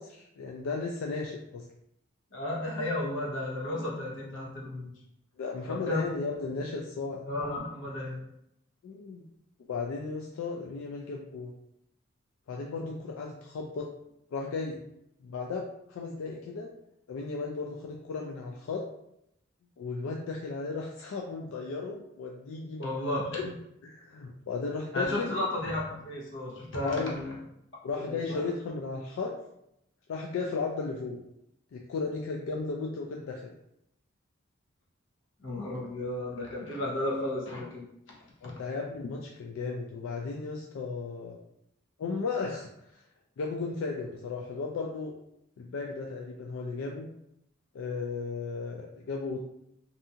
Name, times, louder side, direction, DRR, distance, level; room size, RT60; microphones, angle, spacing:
voice 1, 0.0-1.7 5.4-7.2 8.8-9.2 9.7-11.5 12.5-13.9 14.3-14.8 15.2-16.7 17.1-18.8 19.8-23.0 23.3-23.5 23.8-25.3 26.8-27.1 27.8-29.3 30.1-31.2 31.7-33.5 38.4-41.4 42.0-43.0 43.4-45.1 45.6-47.1 47.7-49.4, left 4 dB, 85° left, 0 dB, 0.3 m, -35 dB
voice 2, 2.3-4.9 5.7-6.0 7.3-8.2 22.8-23.3 24.9-27.3 28.0-28.5 35.4-37.8 38.4-38.5, left 1 dB, 65° left, -3 dB, 0.7 m, -33 dB
2.7 x 2.3 x 2.7 m, 0.80 s
head